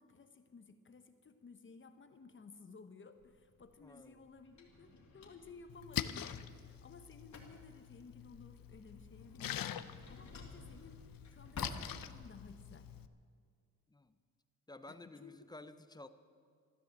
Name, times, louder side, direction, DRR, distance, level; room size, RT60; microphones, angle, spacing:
voice 1, 0.0-12.9 14.9-15.5, left 4 dB, 35° left, 9 dB, 1.0 m, -56 dB
Drawer open or close, 3.2-12.5, left 3 dB, 55° left, 2.4 m, -54 dB
voice 2, 3.8-4.3 13.9-14.1 14.7-16.1, left 2 dB, 10° left, 11 dB, 0.5 m, -53 dB
Splash splatter, 5.7-13.1, left 10 dB, 75° left, 0.7 m, -45 dB
14.0 x 13.0 x 7.7 m, 2.1 s
wide cardioid pair, 175°, 34 cm